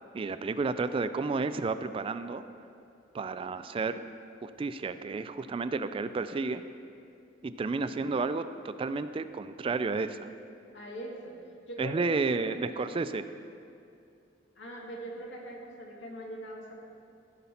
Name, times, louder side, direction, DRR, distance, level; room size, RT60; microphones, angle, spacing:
voice 1, 0.1-2.4 3.1-4.1 4.4-6.6 7.4-10.3 11.8-13.2, right 4 dB, 30° right, 11 dB, 0.3 m, -31 dB
voice 2, 10.7-11.4 11.7-13.0 14.6-16.8, right 1 dB, 85° left, -2 dB, 1.8 m, -42 dB
15.5 x 5.6 x 4.3 m, 2.5 s
head